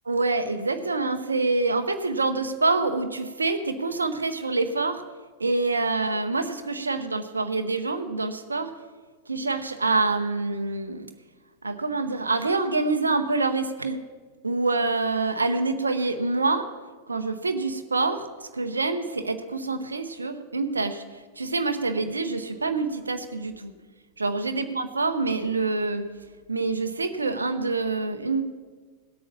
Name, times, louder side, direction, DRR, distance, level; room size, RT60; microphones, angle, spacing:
voice 1, 0.1-5.0 5.4-8.7 9.3-11.1 11.6-14.0 14.4-16.7 17.1-23.7 24.2-26.1 26.5-28.4, right 3 dB, 75° right, 8 dB, 0.8 m, -26 dB
18.5 x 8.5 x 7.1 m, 1.4 s
figure-of-eight pair, 90°, 0 cm